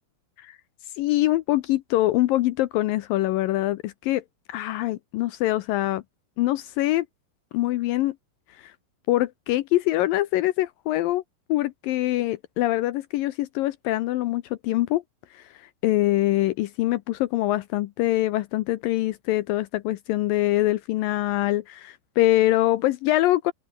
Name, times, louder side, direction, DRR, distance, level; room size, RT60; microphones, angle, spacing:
voice 1, 1.0-4.2 4.5-6.0 6.4-7.1 7.5-8.2 8.6-8.7 9.1-11.2 11.5-15.0 15.3-23.5, left 16 dB, 80° left, 2.1 m, -24 dB
open air
omnidirectional pair, 4.7 m